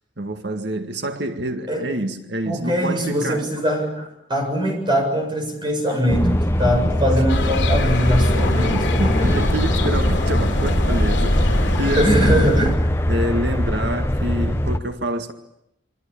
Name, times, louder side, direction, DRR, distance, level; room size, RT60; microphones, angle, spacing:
voice 1, 0.2-3.5 7.1-7.2 8.7-12.4 13.1-15.3, right 1 dB, 70° right, 2.0 m, -27 dB
voice 2, 2.5-9.3 12.0-12.8, equal, 25° right, 7.5 m, -22 dB
sound 1, 6.1-14.8, left 1 dB, 15° left, 1.2 m, -21 dB
sound 2, 7.3-12.8, left 1 dB, 80° left, 3.4 m, -24 dB
28.0 x 24.0 x 8.8 m
head